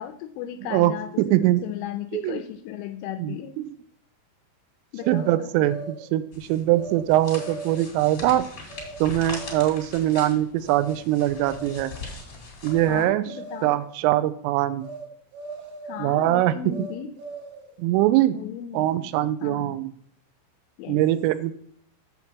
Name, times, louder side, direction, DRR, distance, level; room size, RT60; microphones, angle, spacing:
voice 1, 0.0-3.6 4.9-5.5 12.9-13.8 15.8-17.1 18.3-19.1 19.4-19.9 20.8-21.0, left 10 dB, 85° left, 8 dB, 2.9 m, -36 dB
voice 2, 1.2-1.6 2.1-2.4 3.2-3.4 5.1-8.5 9.0-11.9 12.6-13.2 13.6-14.9 16.0-16.5 17.8-18.3 18.7-19.9 20.9-21.5, right 14 dB, 85° right, 13 dB, 3.1 m, -22 dB
sound 1, 5.0-6.1 6.8-7.0 7.3-7.9 8.7-9.0 9.3-9.9 10.6-11.0 11.3-11.9 12.6-13.0 13.3-13.9 14.8-15.1 15.3-16.1 16.7-17.7, right 3 dB, 65° right, 2.2 m, -39 dB
sound 2, 6.3-13.0, left 3 dB, 45° left, 1.4 m, -41 dB
7.9 x 7.1 x 4.4 m, 0.62 s
omnidirectional pair, 6.0 m